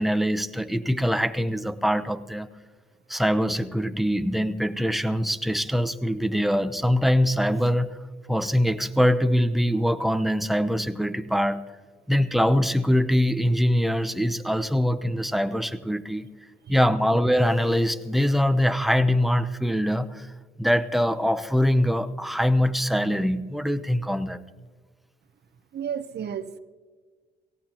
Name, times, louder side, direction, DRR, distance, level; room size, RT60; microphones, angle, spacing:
voice 1, 0.0-2.5 3.1-8.0 8.3-11.6 12.1-16.3 16.7-20.3 20.6-24.4, equal, ahead, 11 dB, 0.7 m, -23 dB
voice 2, 25.7-26.6, right 8 dB, 55° right, 12 dB, 0.9 m, -32 dB
18.0 x 16.0 x 3.0 m, 1.4 s
cardioid pair, 90°, 20 cm